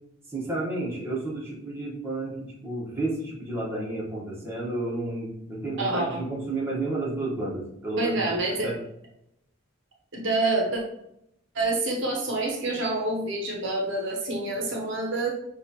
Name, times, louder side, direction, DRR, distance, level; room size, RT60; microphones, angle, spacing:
voice 1, 0.3-2.4 2.6-8.2 8.6-8.8, right 2 dB, 10° right, -6 dB, 1.1 m, -31 dB
voice 2, 5.8-6.2 8.0-8.7 10.1-10.8 11.5-15.3, right 2 dB, 60° right, -1 dB, 0.8 m, -27 dB
6.0 x 2.5 x 2.8 m, 0.78 s
head